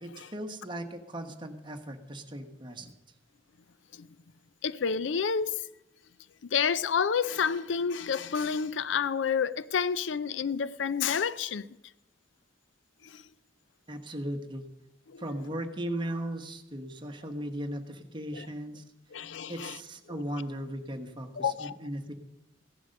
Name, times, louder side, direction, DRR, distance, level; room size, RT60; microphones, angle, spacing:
voice 1, 0.0-2.9 13.9-14.6 15.2-18.8 19.5-22.1, right 1 dB, 25° right, 1.2 m, -37 dB
voice 2, 4.6-5.6 6.5-11.6 13.1-13.2 15.1-15.2 18.3-18.5 19.1-19.8 21.4-21.8, left 6 dB, 75° left, 0.5 m, -29 dB
15.5 x 11.0 x 6.5 m
head